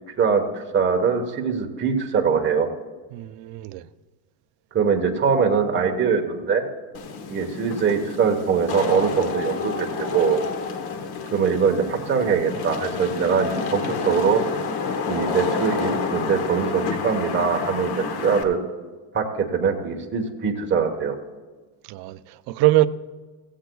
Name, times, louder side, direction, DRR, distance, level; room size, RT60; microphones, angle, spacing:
voice 1, 0.2-2.7 4.7-6.7 7.3-10.4 11.3-14.4 15.1-18.6 19.1-21.2, right 6 dB, 25° right, 1.2 m, -22 dB
voice 2, 3.1-3.9 21.9-22.9, right 16 dB, 50° right, 0.5 m, -22 dB
Wind / Rain, 6.9-18.4, left 5 dB, 50° left, 1.2 m, -29 dB
16.0 x 15.5 x 2.3 m
cardioid pair, 155°, 48 cm